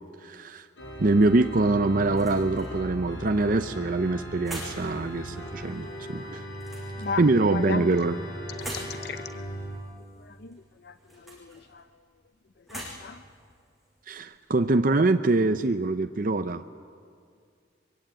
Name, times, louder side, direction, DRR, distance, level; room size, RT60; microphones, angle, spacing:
voice 1, 0.2-0.7 1.0-6.4 7.2-8.1 14.1-16.6, right 2 dB, 50° right, 8 dB, 0.6 m, -24 dB
Organ, 0.8-9.9, equal, 80° left, 7.3 m, -38 dB
sound 1, 2.0-14.8, right 1 dB, ahead, 6.8 m, -47 dB
voice 2, 7.0-7.9 8.5-9.4 10.2-12.0 12.6-13.2, left 5 dB, 60° left, 11 dB, 0.6 m, -37 dB
24.0 x 23.5 x 9.0 m, 2.2 s
head